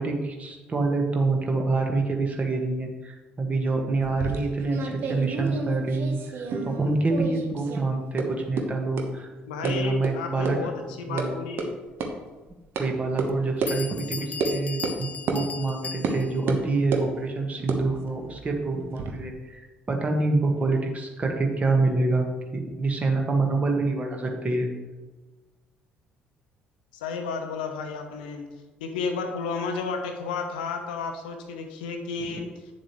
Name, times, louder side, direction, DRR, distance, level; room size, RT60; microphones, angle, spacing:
voice 1, 0.0-9.3 9.6-10.6 11.1-11.3 12.8-22.3 22.5-24.7, right 3 dB, 30° right, 2 dB, 1.5 m, -26 dB
sound 1, 4.0-6.8 7.1-7.8 8.2-8.3 8.6-8.7 9.0-9.1 9.6-9.7 10.0-10.1 10.5-10.6 10.9-11.3 11.6-11.7 12.0-12.1 12.8-12.9 13.2-13.3 13.6-13.7 14.4-14.5 14.8-15.0 15.3-15.4 16.0-16.2 16.5-17.1 17.6-19.1, right 4 dB, 50° right, 1.0 m, -30 dB
voice 2, 9.5-11.8 27.0-28.5 28.8-32.5, left 4 dB, 70° left, 5 dB, 0.8 m, -32 dB
Bell, 12.5-12.6 13.3-13.4 13.7-16.5, left 5 dB, 30° left, 0.6 m, -37 dB
9.6 x 7.2 x 3.1 m, 1.2 s
figure-of-eight pair, 50°, 5 cm